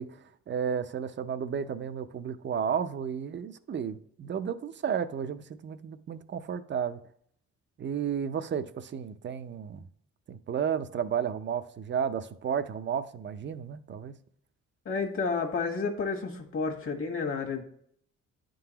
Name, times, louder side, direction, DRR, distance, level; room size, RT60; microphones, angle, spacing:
voice 1, 0.0-7.0 7.8-9.8 10.3-14.1, right 7 dB, 40° right, 0.5 m, -33 dB
voice 2, 14.8-17.6, left 4 dB, 45° left, 1.5 m, -31 dB
10.5 x 3.9 x 2.9 m
cardioid pair, 90°, 30 cm